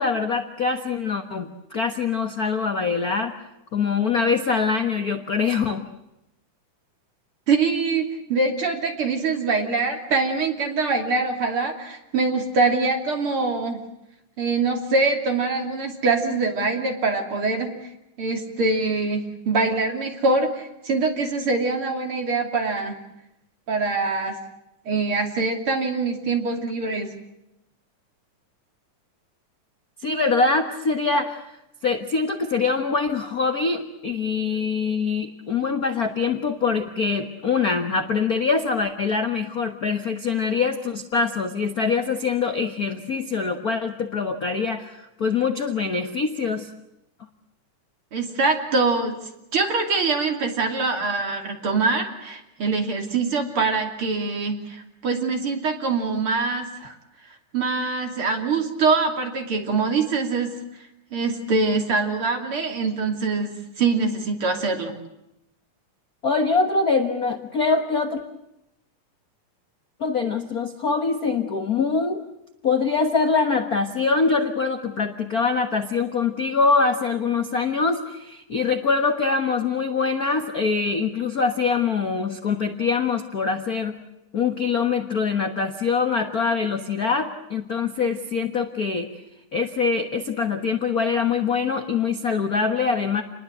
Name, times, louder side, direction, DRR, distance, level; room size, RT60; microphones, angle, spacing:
voice 1, 0.0-1.5 1.7-3.3 3.7-5.8 30.0-31.4 31.8-46.7 66.2-68.2 70.0-72.2 72.6-83.9 84.3-89.2 89.5-93.2, left 4 dB, 45° left, 6 dB, 1.2 m, -24 dB
voice 2, 7.5-13.8 14.4-17.9 18.2-23.0 23.7-24.4 24.9-27.1 48.1-49.2 49.5-57.0 57.5-60.6 61.1-65.0, right 3 dB, 45° right, 3 dB, 3.5 m, -24 dB
28.5 x 21.0 x 7.9 m, 0.86 s
omnidirectional pair, 3.6 m